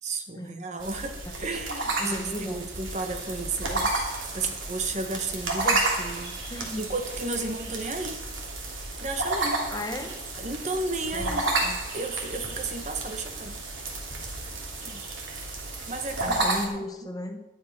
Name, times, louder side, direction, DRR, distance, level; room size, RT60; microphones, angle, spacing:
voice 1, 0.0-3.9 4.3-8.2 9.0-9.6 10.4-11.6 11.9-13.6 14.2-14.3 14.8-15.1 15.9-16.9, right 3 dB, 35° right, 6 dB, 1.3 m, -33 dB
sound 1, 0.8-16.7, right 2 dB, 80° right, 2.9 m, -31 dB
voice 2, 1.3-1.6 2.0-2.6 6.5-6.9 9.7-10.3 11.1-11.8 16.2-17.4, left 1 dB, 20° left, 6 dB, 0.9 m, -36 dB
12.0 x 10.0 x 5.7 m, 0.98 s
head